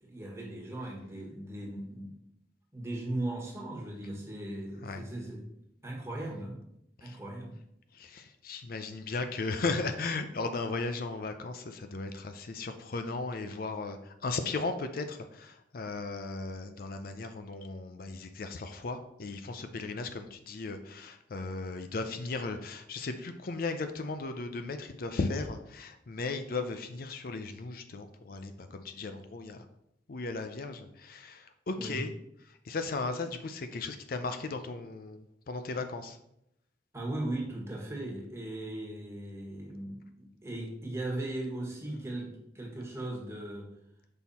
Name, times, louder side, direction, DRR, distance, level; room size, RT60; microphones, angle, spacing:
voice 1, 0.0-2.2 2.7-5.4 5.8-6.6 7.0-7.6 31.8-32.0 36.9-43.7, right 1 dB, 15° right, -1 dB, 1.6 m, -38 dB
voice 2, 7.9-29.7 30.1-32.1 32.5-36.2, left 3 dB, 55° left, 8 dB, 0.5 m, -36 dB
6.1 x 5.5 x 4.3 m, 0.79 s
head